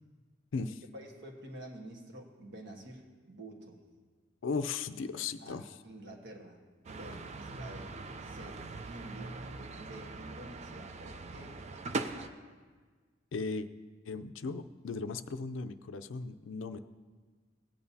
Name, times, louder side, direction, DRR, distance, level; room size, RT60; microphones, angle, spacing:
voice 1, 0.9-3.8 5.4-8.0 8.2-9.4 9.8-12.4, right 1 dB, 65° right, 1 dB, 1.4 m, -49 dB
voice 2, 4.4-5.8 13.3-13.7 14.1-16.8, left 4 dB, 75° left, 12 dB, 0.4 m, -37 dB
sound 1, 6.8-12.3, right 3 dB, 35° right, 0.5 m, -41 dB
16.5 x 8.8 x 2.8 m, 1.5 s
head